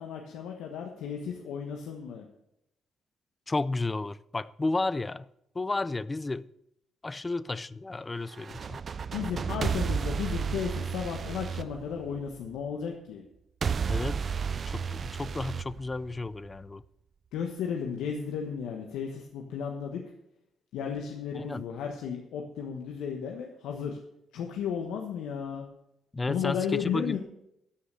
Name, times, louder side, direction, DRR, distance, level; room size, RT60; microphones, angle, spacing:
voice 1, 0.0-2.3 9.1-13.2 17.3-20.0 20.7-24.0 24.3-25.6 26.3-27.2, left 7 dB, 85° left, 1.2 m, -34 dB
voice 2, 3.5-5.3 5.5-6.5 7.0-8.8 13.9-14.2 14.7-16.8 21.3-21.6 26.1-27.2, left 3 dB, 20° left, 0.4 m, -32 dB
sound 1, 8.3-12.5 13.6-16.5, right 6 dB, 45° right, 0.3 m, -32 dB
13.0 x 5.8 x 6.8 m
cardioid pair, 90°, 0 cm